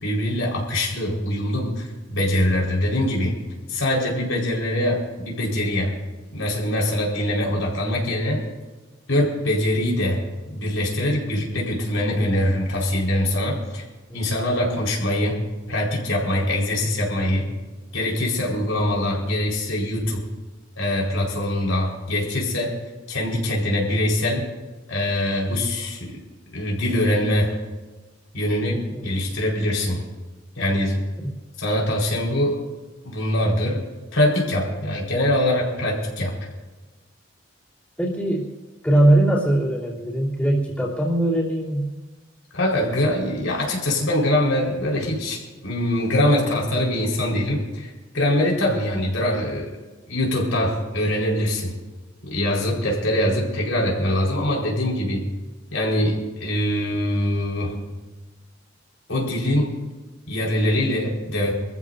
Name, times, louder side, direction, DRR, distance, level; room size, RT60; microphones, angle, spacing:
voice 1, 0.0-3.4 3.7-5.9 6.3-8.4 9.1-10.2 10.5-13.8 14.1-15.4 15.7-17.4 17.9-20.2 20.8-22.7 23.1-24.4 24.9-26.2 26.5-27.5 28.3-30.0 30.6-31.0 31.6-32.6 33.0-33.8 34.1-36.3 42.5-49.7 50.1-51.7 52.2-55.2 55.7-57.7 59.1-59.7 60.3-61.5, left 1 dB, 90° left, -3 dB, 4.5 m, -23 dB
voice 2, 38.0-38.5 38.8-41.9 48.6-48.7, right 1 dB, 5° left, -6 dB, 3.2 m, -21 dB
24.0 x 14.5 x 2.7 m, 1.2 s
head